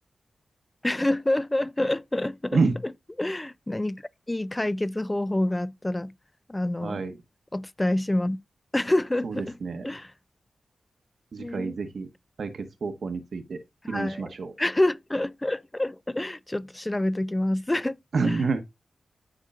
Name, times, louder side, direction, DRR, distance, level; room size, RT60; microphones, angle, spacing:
voice 1, 0.8-2.6 3.2-4.0 4.3-6.1 6.5-7.0 7.5-8.4 8.7-9.6 9.8-10.1 11.4-11.8 13.8-18.0 18.2-18.4, left 1 dB, 15° left, 0.3 m, -27 dB
voice 2, 6.8-7.1 9.2-9.8 11.3-12.1 12.4-13.6 13.9-14.5 18.1-18.6, right 4 dB, 65° right, 1.0 m, -28 dB
13.0 x 4.4 x 2.4 m
wide cardioid pair, 110°, 0 cm